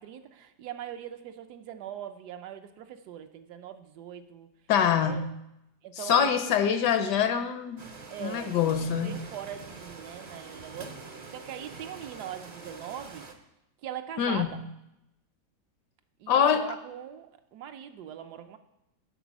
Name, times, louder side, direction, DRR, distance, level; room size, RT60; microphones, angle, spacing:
voice 1, 0.0-4.5 5.0-5.3 5.8-6.5 8.1-8.6 8.9-13.3 13.8-14.6 16.2-18.6, right 10 dB, 80° right, 8 dB, 1.2 m, -41 dB
voice 2, 4.7-5.4 6.0-7.8 8.2-9.2 14.2-14.7 16.3-16.6, left 8 dB, 85° left, 9 dB, 1.4 m, -25 dB
sound 1, 7.8-13.3, right 4 dB, 55° right, 0.4 m, -45 dB
10.0 x 4.0 x 7.1 m, 0.85 s
omnidirectional pair, 1.8 m